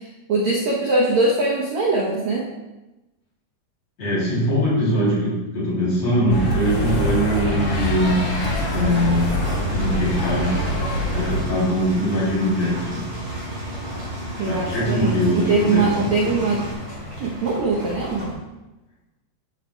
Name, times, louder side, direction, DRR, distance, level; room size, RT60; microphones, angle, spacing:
voice 1, 0.0-2.5 14.4-16.7 17.2-18.4, right 3 dB, 80° right, -4 dB, 1.6 m, -22 dB
voice 2, 4.0-8.3 8.7-9.3 9.7-10.7 11.1-13.1 14.5-16.4, equal, 45° left, -8 dB, 4.3 m, -22 dB
sound 1, 6.3-11.4, equal, 65° left, 1.1 m, -24 dB
sound 2, 7.5-18.3, equal, 20° right, 2.5 m, -35 dB
Engine, 7.7-16.7, right 1 dB, 55° right, 3.3 m, -33 dB
12.5 x 6.9 x 2.3 m, 1.0 s
omnidirectional pair, 4.8 m